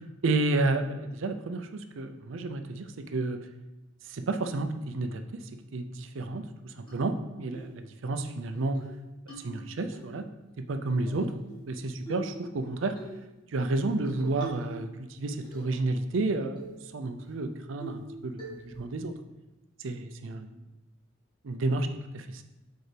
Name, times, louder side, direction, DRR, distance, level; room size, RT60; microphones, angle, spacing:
voice 1, 0.2-3.4 4.0-5.2 5.7-8.8 9.4-10.3 10.6-11.3 11.6-13.0 13.5-16.7 16.9-19.1 19.8-20.6 21.4-21.9 22.1-22.4, right 2 dB, 85° right, 8 dB, 0.5 m, -31 dB
sound 1, 6.9-7.0 7.5-7.7 8.1-8.2 8.5-8.9 9.3-10.0 11.1-11.7 12.1-12.4 12.9-13.2 14.2-14.8 15.1-15.8 16.1-16.2 16.6-16.8 17.2-17.3 17.8-18.1 18.4-18.8, right 3 dB, 25° left, 1.8 m, -43 dB
6.5 x 4.5 x 3.3 m, 1.0 s
head